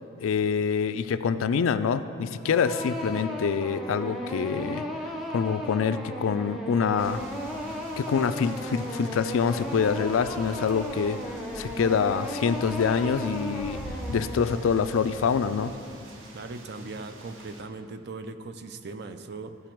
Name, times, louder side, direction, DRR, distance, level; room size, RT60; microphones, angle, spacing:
voice 1, 0.2-4.9 5.3-7.2 8.0-11.2 11.5-13.8 14.1-15.7, left 6 dB, 85° left, 12 dB, 0.4 m, -26 dB
sound 1, 2.4-15.2, equal, ahead, 0.6 m, -36 dB
sound 2, 7.0-17.6, right 1 dB, 75° right, 1.0 m, -44 dB
voice 2, 16.3-19.6, right 3 dB, 55° right, 9 dB, 0.4 m, -39 dB
14.5 x 5.0 x 4.5 m, 2.5 s
head